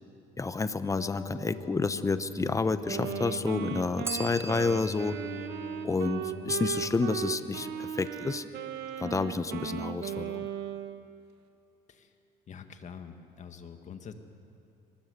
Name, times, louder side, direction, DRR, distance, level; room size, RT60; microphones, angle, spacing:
voice 1, 0.4-5.2 5.8-8.5 9.0-10.5, left 3 dB, 20° left, 12 dB, 0.9 m, -30 dB
sound 1, 0.9-8.0, left 5 dB, 90° left, 5.4 m, -43 dB
Wind instrument woodwind instrument, 2.8-11.1, right 9 dB, 80° right, 1.5 m, -37 dB
Bell, 4.0-6.9, right 3 dB, 15° right, 0.6 m, -42 dB
voice 2, 12.5-14.1, left 7 dB, 45° left, 7 dB, 2.0 m, -45 dB
23.5 x 20.5 x 8.2 m, 2.6 s
cardioid pair, 110°, 17 cm